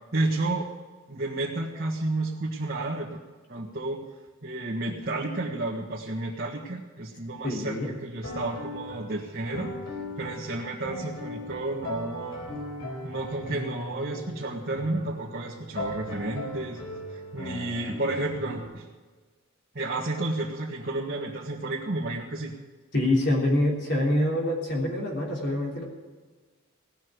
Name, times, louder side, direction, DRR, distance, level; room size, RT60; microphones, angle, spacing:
voice 1, 0.1-0.7 1.1-3.2 3.5-4.0 4.4-9.7 10.2-12.4 13.0-16.8 17.1-18.8 19.7-22.5, right 2 dB, 50° right, -3 dB, 1.6 m, -31 dB
voice 2, 7.4-7.9 22.9-25.8, left 1 dB, 50° left, -2 dB, 3.4 m, -25 dB
sound 1, 8.2-18.7, left 2 dB, 85° left, 4.2 m, -38 dB
17.5 x 6.5 x 9.4 m, 1.4 s
head